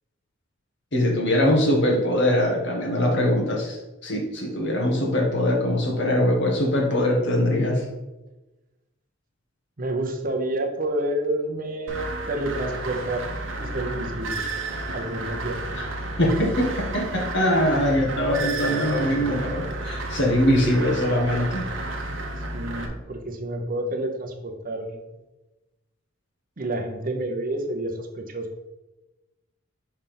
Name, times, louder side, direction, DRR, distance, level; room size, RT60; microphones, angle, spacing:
voice 1, 0.9-7.9 15.8-15.9 16.2-21.6, left 1 dB, 60° left, -1 dB, 1.5 m, -22 dB
voice 2, 9.8-13.3 13.6-14.4 14.9-15.6 22.1-25.0 26.6-28.5, right 1 dB, 45° right, 4 dB, 0.8 m, -29 dB
sound 1, 11.9-22.9, right 2 dB, 70° right, 0.9 m, -32 dB
5.4 x 3.4 x 5.7 m, 1.1 s
head